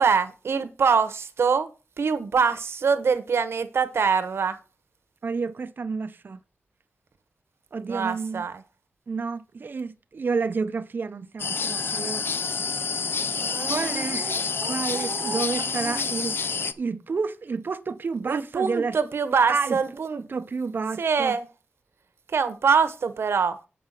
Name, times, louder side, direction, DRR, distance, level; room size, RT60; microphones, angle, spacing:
voice 1, 0.0-1.7 2.0-4.6 7.9-8.6 13.4-16.1 18.3-20.2 21.0-21.5 22.3-23.6, right 5 dB, 80° right, 1.2 m, -25 dB
voice 2, 5.2-6.4 7.7-8.4 9.1-12.3 12.6-12.7 13.7-19.0 19.5-21.4, right 4 dB, 55° right, 0.7 m, -30 dB
sound 1, 11.4-16.7, left 5 dB, 65° left, 0.7 m, -28 dB
8.5 x 5.6 x 6.6 m
wide cardioid pair, 115°, 4 cm